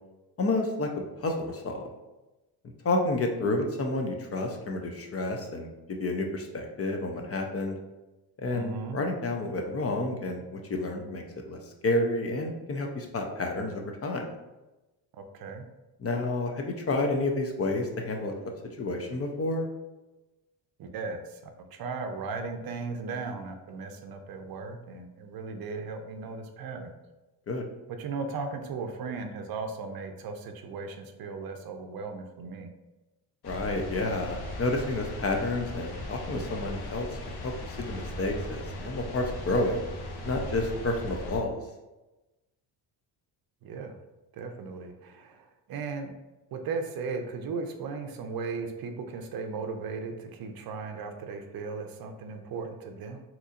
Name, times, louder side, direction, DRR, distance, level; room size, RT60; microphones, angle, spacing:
voice 1, 0.4-0.9 1.2-1.9 2.8-7.8 8.4-14.3 16.0-18.3 18.8-19.7 27.5-27.6 33.4-39.8 40.2-41.6, left 2 dB, 30° left, 3 dB, 0.6 m, -30 dB
voice 2, 8.5-9.0 15.2-15.6 20.8-26.9 28.0-32.7 43.6-44.0 44.3-46.1 46.5-53.2, right 4 dB, 50° right, 5 dB, 0.6 m, -37 dB
sound 1, 33.4-41.4, left 1 dB, 55° left, 0.9 m, -38 dB
3.9 x 2.9 x 2.5 m, 1.0 s
supercardioid pair, 80°, 45 cm